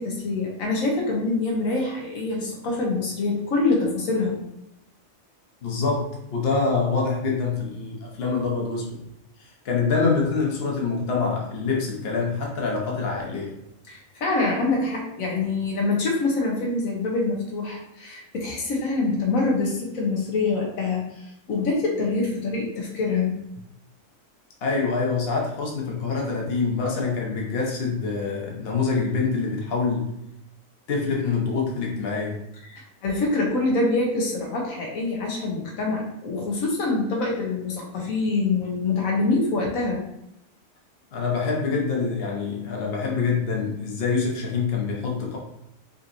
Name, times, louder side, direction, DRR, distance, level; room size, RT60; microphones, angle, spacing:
voice 1, 0.0-4.4 13.9-23.3 32.7-40.0, left 3 dB, 85° left, -1 dB, 1.4 m, -25 dB
voice 2, 5.6-9.0 9.4-13.6 24.6-30.1 30.9-32.4 41.1-45.4, left 4 dB, 50° left, -1 dB, 1.1 m, -25 dB
5.3 x 2.9 x 2.6 m, 0.79 s
omnidirectional pair, 1.4 m